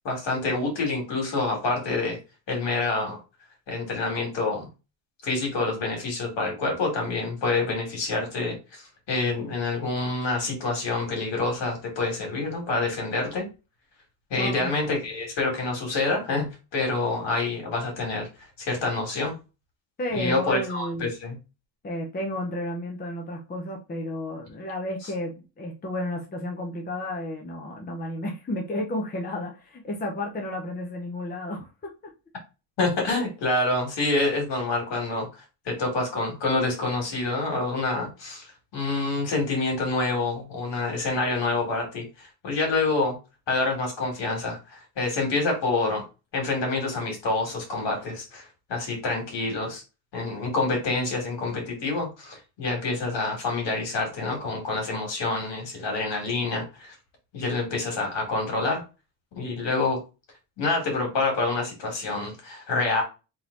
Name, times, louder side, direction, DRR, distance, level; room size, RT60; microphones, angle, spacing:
voice 1, 0.0-2.2 2.5-3.2 3.7-4.7 5.2-13.5 14.3-18.3 18.6-19.4 20.1-21.4 32.8-38.5 38.7-43.2 43.5-46.0 46.3-49.8 50.1-56.9 57.3-58.8 59.3-60.0 60.6-63.0, left 3 dB, 65° left, 0 dB, 2.3 m, -27 dB
voice 2, 14.4-14.7 20.0-21.1 21.8-31.7 32.0-32.1, left 1 dB, 20° left, 1 dB, 0.7 m, -32 dB
3.8 x 3.0 x 3.9 m, 0.30 s
cardioid pair, 160°, 46 cm